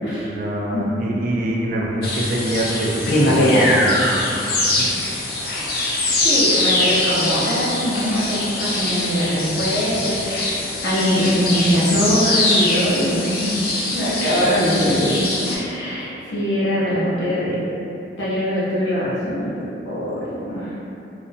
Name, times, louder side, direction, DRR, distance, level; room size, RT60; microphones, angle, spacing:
voice 1, 0.2-4.9, right 1 dB, 50° right, -2 dB, 0.3 m, -25 dB
sound 1, 2.0-15.6, left 1 dB, 55° left, 0.4 m, -22 dB
voice 2, 6.2-10.5 10.8-13.5 13.9-15.1 15.4-17.6 18.2-20.8, equal, 85° left, -9 dB, 0.8 m, -22 dB
2.4 x 2.0 x 2.6 m, 2.8 s
head